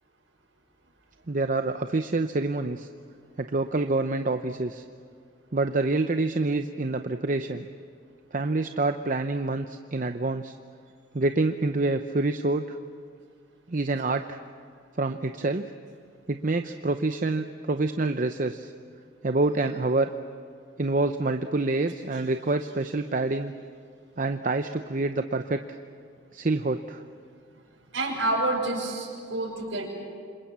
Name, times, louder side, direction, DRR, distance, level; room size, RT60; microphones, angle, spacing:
voice 1, 1.3-2.9 3.4-4.8 5.5-7.6 8.3-10.5 11.1-12.8 13.7-14.4 15.0-15.7 16.3-18.7 19.2-20.1 20.8-23.5 24.2-25.8 26.3-27.0, right 2 dB, 45° right, 8 dB, 0.7 m, -27 dB
voice 2, 27.9-29.9, right 2 dB, 75° right, -3 dB, 6.2 m, -28 dB
27.5 x 26.5 x 7.5 m, 2.2 s
head